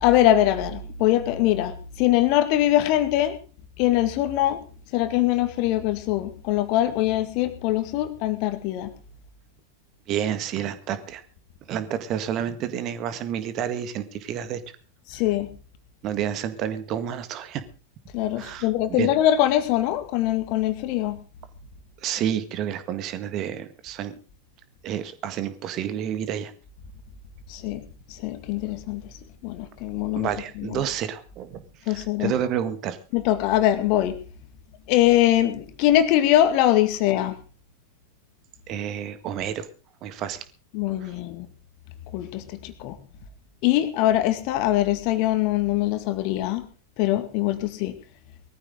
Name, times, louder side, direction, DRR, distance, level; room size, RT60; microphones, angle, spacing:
voice 1, 0.0-3.4 3.8-4.6 4.9-8.9 15.1-15.5 18.1-21.2 27.5-29.1 29.4-30.3 30.6-30.8 31.9-32.3 33.1-34.2 34.9-37.4 40.7-41.5 42.1-43.0 43.6-46.6 47.0-48.0, left 13 dB, 45° left, 9 dB, 2.1 m, -22 dB
voice 2, 10.1-11.2 11.7-14.6 16.0-17.6 18.4-19.1 22.0-24.2 24.8-26.5 30.1-33.0 38.7-39.7 40.0-40.5 41.0-41.1, right 9 dB, 35° right, 11 dB, 1.8 m, -30 dB
20.0 x 14.5 x 3.8 m, 0.37 s
figure-of-eight pair, 90°, 0 cm